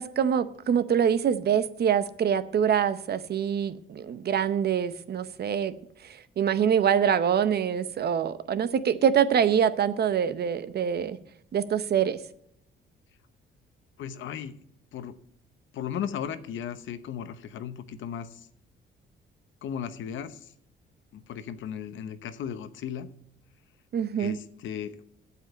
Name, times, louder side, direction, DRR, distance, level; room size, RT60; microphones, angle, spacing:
voice 1, 0.0-5.7 6.4-11.2 11.5-12.2 23.9-24.4, right 8 dB, 55° right, 13 dB, 0.8 m, -25 dB
voice 2, 14.0-14.6 14.9-15.2 15.7-18.5 19.6-20.5 21.1-23.1 24.2-24.9, left 8 dB, 75° left, 12 dB, 0.9 m, -36 dB
8.1 x 7.8 x 8.3 m, 0.68 s
cardioid pair, 90°, 20 cm